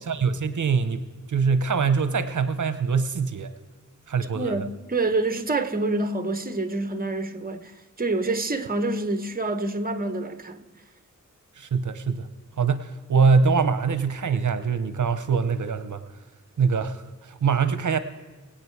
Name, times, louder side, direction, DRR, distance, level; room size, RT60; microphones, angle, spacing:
voice 1, 0.1-3.5 4.1-4.7 11.6-12.3 12.6-16.0 16.6-18.0, right 5 dB, 75° right, 0.7 m, -23 dB
voice 2, 4.3-7.7 8.0-10.7, right 2 dB, 30° right, 1.1 m, -27 dB
24.0 x 8.6 x 4.7 m
wide cardioid pair, 90°, 31 cm